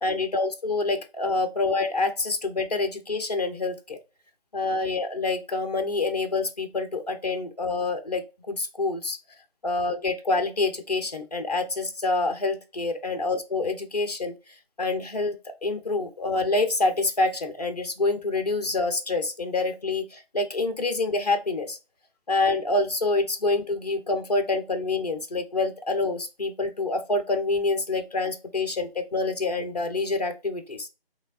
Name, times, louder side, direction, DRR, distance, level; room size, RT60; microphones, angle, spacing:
voice 1, 0.0-4.0 4.5-9.2 9.6-14.3 14.8-15.4 15.6-21.8 22.3-30.9, left 3 dB, 40° left, 8 dB, 0.7 m, -27 dB
5.1 x 3.4 x 2.5 m, 0.28 s
figure-of-eight pair, 170°, 30 cm